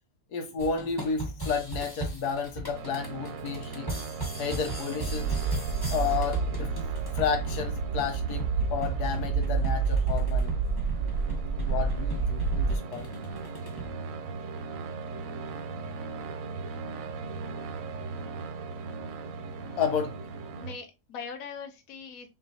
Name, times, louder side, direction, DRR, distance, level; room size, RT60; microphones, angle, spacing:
voice 1, 0.3-4.0 4.4-5.3 5.9-6.7 7.1-10.5 11.7-13.1 19.8-20.2, left 6 dB, 80° left, 1.4 m, -31 dB
sound 1, 0.6-13.9, right 2 dB, 15° left, 1.1 m, -39 dB
sound 2, 2.7-20.8, right 4 dB, 70° right, 0.9 m, -39 dB
sound 3, 5.0-12.8, right 5 dB, 85° right, 1.1 m, -29 dB
voice 2, 20.6-22.3, left 6 dB, 65° left, 1.2 m, -41 dB
5.8 x 2.6 x 2.7 m
omnidirectional pair, 1.7 m